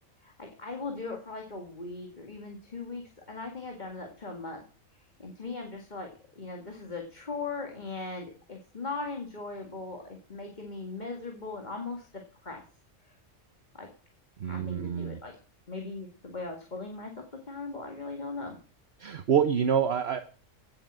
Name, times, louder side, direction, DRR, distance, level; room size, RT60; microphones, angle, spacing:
voice 1, 0.2-4.6 5.2-12.6 13.8-13.9 14.4-15.3 15.7-17.1 17.5-18.6, left 3 dB, 35° left, 2 dB, 2.1 m, -39 dB
voice 2, 14.4-15.2 19.0-20.2, right 8 dB, 55° right, 9 dB, 1.1 m, -27 dB
16.0 x 7.9 x 6.2 m, 0.40 s
omnidirectional pair, 1.3 m